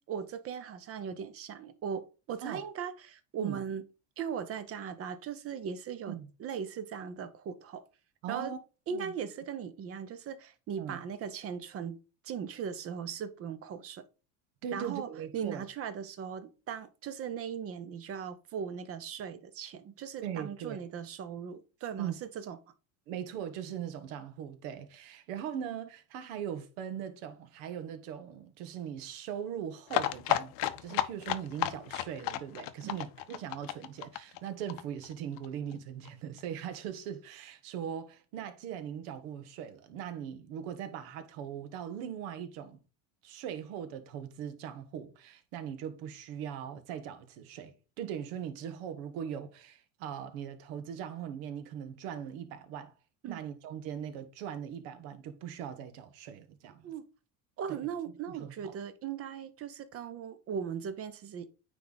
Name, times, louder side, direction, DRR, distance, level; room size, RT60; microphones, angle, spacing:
voice 1, 0.1-3.8 4.2-7.8 8.3-8.5 8.9-12.0 12.2-14.0 14.7-15.1 15.3-22.6 32.8-33.0 53.2-53.4 56.8-57.0 57.6-61.5, right 7 dB, 35° right, 0.7 m, -38 dB
voice 2, 8.2-8.6 8.9-9.1 10.8-11.0 14.6-15.6 20.2-20.8 22.0-22.2 23.1-42.8 43.2-52.9 53.3-56.9 57.7-57.9 58.4-58.8, right 9 dB, 75° right, 1.2 m, -40 dB
sound 1, 29.9-35.5 35.7-35.8 36.1-36.2 36.4-36.5, left 14 dB, 55° left, 0.6 m, -33 dB
9.1 x 3.4 x 4.0 m
cardioid pair, 145°, 39 cm